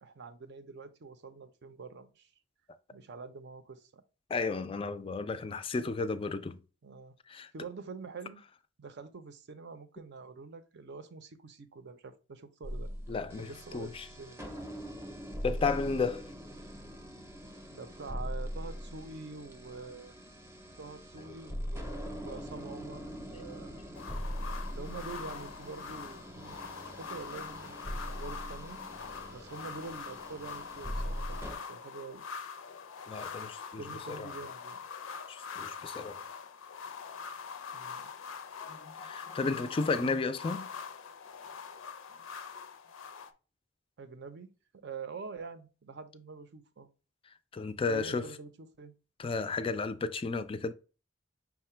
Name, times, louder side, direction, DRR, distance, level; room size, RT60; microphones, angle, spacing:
voice 1, 0.0-2.3 2.9-4.0 6.8-8.4 8.8-12.9 13.4-14.4 17.7-20.1 20.8-23.8 24.7-28.8 29.3-32.2 33.8-34.8 37.7-38.0 44.0-46.9 47.8-48.9, right 4 dB, 60° right, 0.5 m, -46 dB
voice 2, 4.3-6.6 7.3-7.5 13.1-14.1 15.4-16.2 33.1-33.8 34.2-34.3 35.3-36.2 38.6-40.7 47.5-48.2 49.2-50.7, left 4 dB, 25° left, 0.3 m, -33 dB
sound 1, 12.6-31.5, equal, 15° right, 0.7 m, -41 dB
sound 2, 23.9-43.3, left 6 dB, 80° left, 0.5 m, -44 dB
5.6 x 2.1 x 4.3 m
head